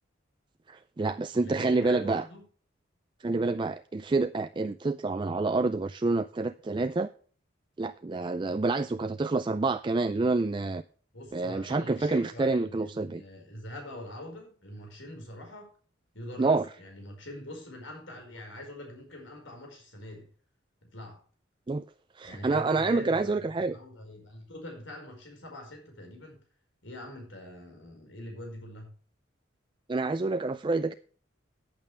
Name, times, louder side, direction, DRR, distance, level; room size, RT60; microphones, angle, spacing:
voice 1, 0.7-2.2 3.2-7.1 7.8-10.8 11.3-13.2 16.4-16.7 21.7-21.8 22.2-23.8 29.9-30.9, right 3 dB, 25° right, 10 dB, 0.4 m, -28 dB
voice 2, 1.4-2.4 11.1-15.8 16.1-20.3 20.8-21.2 22.2-26.4 26.8-28.9, left 1 dB, 75° left, 3 dB, 5.0 m, -44 dB
14.5 x 8.9 x 3.4 m, 0.43 s
head